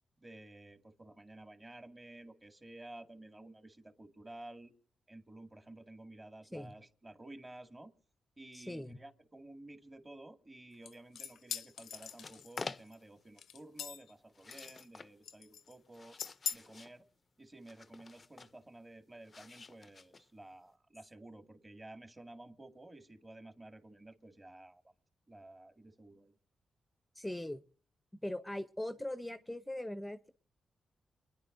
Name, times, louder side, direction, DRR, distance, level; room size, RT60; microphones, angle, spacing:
voice 1, 0.2-4.7 5.1-7.9 8.4-16.2 16.5-17.0 17.4-24.9 25.3-26.3, right 2 dB, 25° right, 6 dB, 2.0 m, -53 dB
voice 2, 8.5-9.0 27.1-27.6 28.2-30.3, left 1 dB, 10° left, 10 dB, 0.7 m, -40 dB
sound 1, 10.9-12.9 13.4-14.1 14.5-15.0 15.3-15.7 16.2-16.6, left 8 dB, 85° left, 0.7 m, -42 dB
sound 2, 11.8-13.2 14.3-15.1 15.7-17.0 17.6-18.6 19.2-20.5, left 4 dB, 40° left, 0.5 m, -49 dB
29.0 x 10.0 x 2.6 m, 0.41 s
cardioid pair, 65°, 0 cm